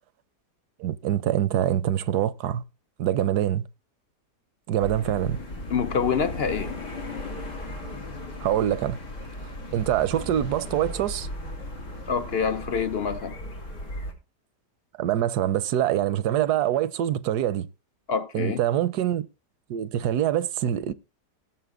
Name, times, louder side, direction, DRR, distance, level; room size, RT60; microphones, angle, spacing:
voice 1, 0.8-2.6 3.0-3.6 4.7-5.4 8.4-9.0 9.4-11.3 15.0-17.7 18.3-19.3 19.7-20.9, right 11 dB, 75° right, 1.2 m, -25 dB
sound 1, 4.8-14.1, left 1 dB, 85° left, 4.4 m, -36 dB
voice 2, 5.7-6.8 12.1-13.4 18.1-18.6, left 6 dB, 50° left, 0.8 m, -26 dB
17.0 x 7.3 x 3.7 m
omnidirectional pair, 1.8 m